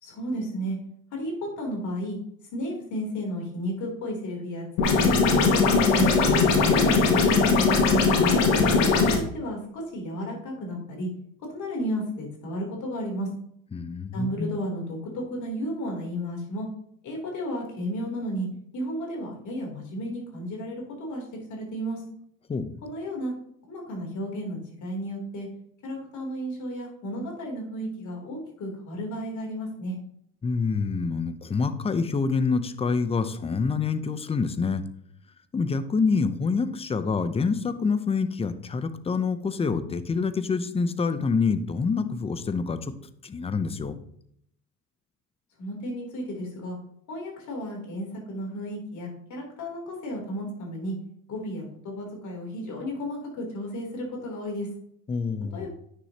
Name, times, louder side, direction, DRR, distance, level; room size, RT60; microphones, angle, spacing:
voice 1, 0.0-0.8 1.1-2.2 2.5-5.6 5.9-8.3 8.7-11.1 11.5-13.3 14.1-16.7 17.0-18.5 18.7-21.2 21.5-22.0 22.8-23.3 23.7-25.5 25.8-30.0 45.6-46.8 47.1-50.9 51.3-54.7 55.5-55.7, equal, 50° left, 0 dB, 3.4 m, -33 dB
sound 1, 4.8-9.2, left 4 dB, 80° left, 1.9 m, -20 dB
voice 2, 13.7-14.5 22.5-22.8 30.4-34.8 35.5-42.8 43.2-44.0 55.1-55.7, left 4 dB, 15° left, 12 dB, 0.6 m, -26 dB
9.4 x 6.5 x 2.9 m, 0.70 s
supercardioid pair, 100°, 38 cm